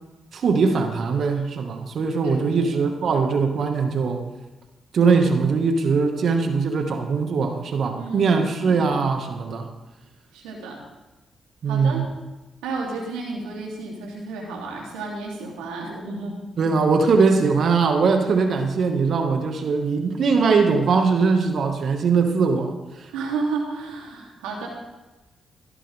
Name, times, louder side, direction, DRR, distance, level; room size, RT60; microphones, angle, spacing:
voice 1, 0.3-4.2 4.9-9.7 11.6-12.0 16.6-22.7, right 4 dB, 65° right, 5 dB, 1.9 m, -21 dB
voice 2, 2.2-2.7 8.0-8.8 10.3-10.8 11.6-12.1 12.6-16.4 23.1-24.7, right 3 dB, 85° right, -2 dB, 3.2 m, -32 dB
18.5 x 12.0 x 3.6 m, 1.1 s
hypercardioid pair, 45°, 0 cm